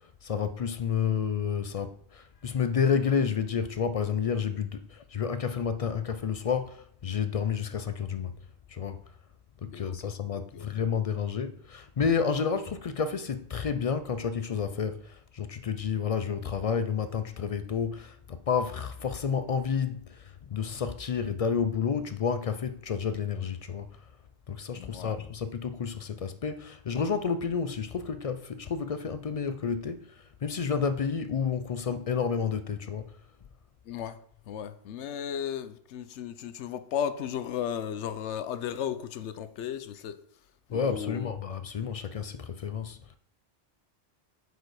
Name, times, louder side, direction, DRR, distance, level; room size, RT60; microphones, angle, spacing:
voice 1, 0.0-8.4 8.7-9.0 9.6-24.1 24.5-33.2 40.7-43.0, left 6 dB, 55° left, 0.4 m, -30 dB
voice 2, 24.7-25.2 33.9-40.2 40.7-41.3, left 9 dB, 90° left, 0.9 m, -35 dB
7.7 x 5.1 x 4.8 m
omnidirectional pair, 1.1 m